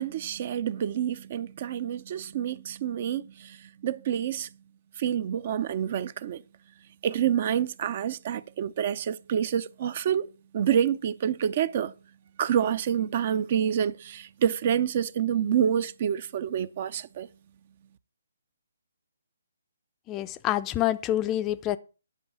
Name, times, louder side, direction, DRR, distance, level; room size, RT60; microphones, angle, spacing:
voice 1, 0.0-4.5 5.0-6.4 7.0-11.9 12.4-17.3, right 9 dB, 45° right, 0.6 m, -28 dB
voice 2, 20.1-21.8, left 13 dB, 20° left, 0.5 m, -27 dB
10.5 x 5.5 x 7.0 m
figure-of-eight pair, 145°, 0 cm